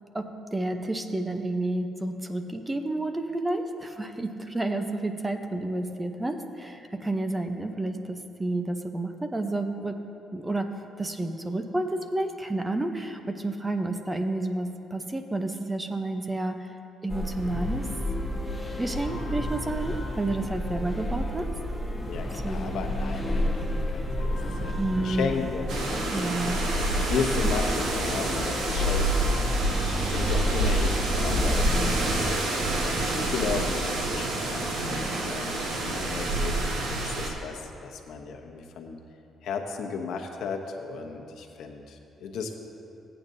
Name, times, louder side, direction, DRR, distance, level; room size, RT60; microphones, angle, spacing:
voice 1, 0.1-10.0 10.3-16.7 17.0-17.8 18.8-21.5 22.3-22.8 24.8-25.3 26.1-26.7, right 2 dB, 15° right, 6 dB, 0.7 m, -30 dB
sound 1, 17.1-32.3, left 1 dB, 10° left, 1.3 m, -30 dB
voice 2, 22.1-39.0 39.4-42.6, left 5 dB, 75° left, 3 dB, 0.9 m, -35 dB
sound 2, 25.7-37.3, right 2 dB, 85° right, 1.5 m, -28 dB
16.5 x 8.8 x 2.7 m, 2.8 s
cardioid pair, 90°, 0 cm